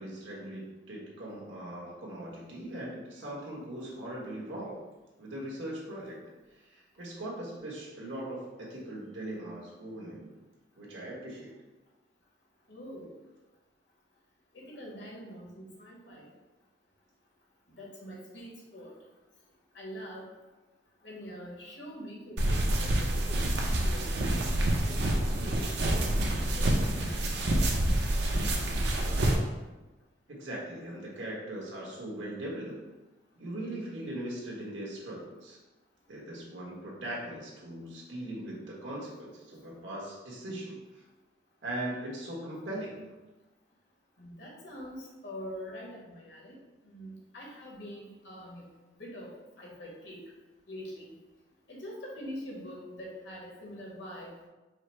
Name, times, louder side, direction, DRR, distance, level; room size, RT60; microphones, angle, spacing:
voice 1, 0.0-4.8 5.2-6.2 6.5-10.3 10.8-11.5 30.3-32.8 33.4-35.6 36.1-40.8 41.6-42.9, right 1 dB, 80° right, -4 dB, 1.3 m, -40 dB
voice 2, 12.7-13.1 14.5-16.3 17.8-18.9 19.7-20.2 21.0-24.2 24.6-25.7 26.0-26.9 44.2-46.6 46.9-48.6 49.0-49.3 49.6-50.2 50.7-51.1 51.7-54.3, equal, 70° left, -3 dB, 1.2 m, -44 dB
sound 1, 22.4-29.3, right 1 dB, 60° right, 0.6 m, -27 dB
4.8 x 2.0 x 4.3 m, 1.1 s
head